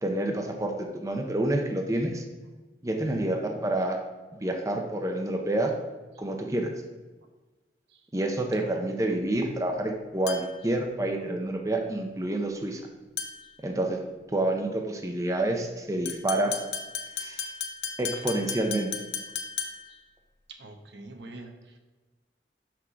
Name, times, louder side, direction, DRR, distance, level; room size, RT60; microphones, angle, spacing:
voice 1, 0.0-2.2 2.8-4.0 4.4-5.7 6.2-6.7 8.1-12.8 13.6-14.0 14.3-16.5 17.2-17.5 18.0-18.9, right 1 dB, 20° right, 3 dB, 0.6 m, -28 dB
sound 1, 10.3-10.7 13.2-13.6 16.1-20.0, left 7 dB, 70° left, 0.7 m, -35 dB
voice 2, 20.5-21.8, right 2 dB, 85° right, 4 dB, 0.9 m, -47 dB
6.1 x 4.7 x 5.8 m, 1.2 s
head